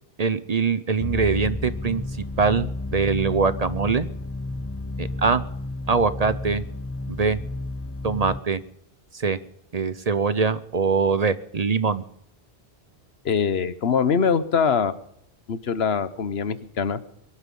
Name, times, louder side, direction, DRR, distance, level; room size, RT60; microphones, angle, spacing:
voice 1, 0.2-2.0 2.4-4.1 5.0-5.4 5.9-6.6 7.1-7.4 8.0-8.6 9.1-9.4 9.7-12.0, right 5 dB, 45° right, 14 dB, 0.8 m, -23 dB
sound 1, 1.0-8.4, left 2 dB, 20° left, 0.4 m, -32 dB
voice 2, 13.2-14.9 15.5-17.0, left 6 dB, 80° left, 13 dB, 1.2 m, -23 dB
22.5 x 11.5 x 5.4 m, 0.73 s
omnidirectional pair, 1.0 m